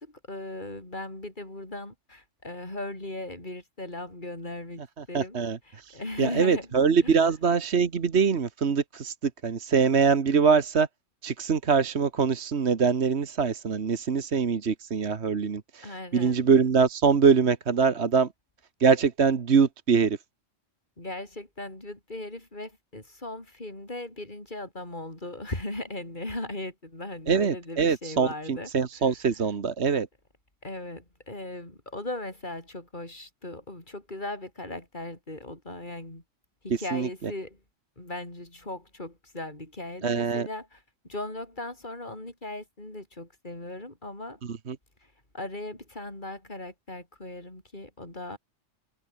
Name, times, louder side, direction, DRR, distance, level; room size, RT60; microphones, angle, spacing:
voice 1, 0.0-4.8 5.1-6.7 7.0-7.3 15.8-16.7 21.0-29.1 30.6-36.2 36.6-37.6 38.0-44.4 45.3-48.4, left 1 dB, 40° left, 5.8 m, -38 dB
voice 2, 5.0-10.9 11.2-18.3 18.8-20.2 27.3-30.1 36.7-37.1 40.0-40.5 44.5-44.8, right 5 dB, 60° right, 1.6 m, -24 dB
omnidirectional pair, 1.3 m